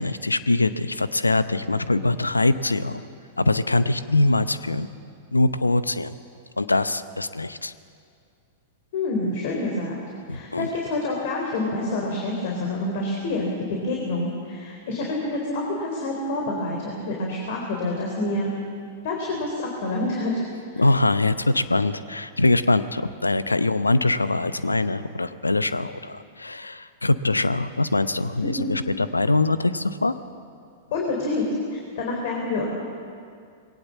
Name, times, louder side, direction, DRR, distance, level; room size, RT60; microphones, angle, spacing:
voice 1, 0.0-3.0 3.4-4.9 5.3-6.1 6.6-7.7 10.3-10.7 20.8-30.2, left 2 dB, 85° left, 14 dB, 0.7 m, -23 dB
voice 2, 8.9-10.0 10.3-18.5 19.0-20.4 20.7-20.8 28.4-28.7 30.9-31.4 31.7-32.7, left 2 dB, 55° left, -1 dB, 3.8 m, -27 dB
21.0 x 18.0 x 7.4 m, 2.3 s
figure-of-eight pair, 100°, 0 cm